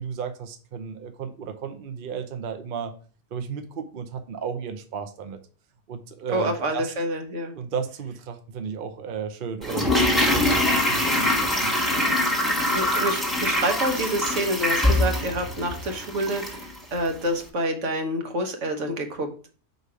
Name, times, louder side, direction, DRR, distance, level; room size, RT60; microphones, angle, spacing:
voice 1, 0.0-2.9 3.3-5.4 5.9-6.9 7.5-11.7, right 6 dB, 50° right, 6 dB, 0.8 m, -34 dB
voice 2, 6.3-7.5 12.3-19.5, right 1 dB, 80° right, 4 dB, 1.5 m, -28 dB
Toilet flush, 9.6-16.7 17.0-17.1, left 1 dB, ahead, 1.3 m, -23 dB
5.2 x 4.1 x 4.7 m, 0.40 s
omnidirectional pair, 1.2 m